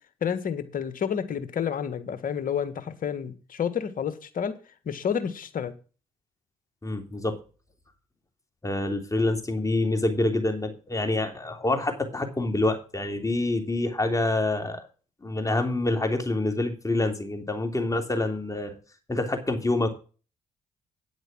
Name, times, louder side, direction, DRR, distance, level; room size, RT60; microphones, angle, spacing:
voice 1, 0.2-4.5 4.8-5.7, left 8 dB, 55° left, 11 dB, 1.6 m, -30 dB
voice 2, 6.8-7.4 8.6-14.9 15.2-18.7 19.1-19.9, left 2 dB, 20° left, 4 dB, 3.2 m, -26 dB
9.6 x 8.0 x 6.1 m, 0.35 s
hypercardioid pair, 45°, 17 cm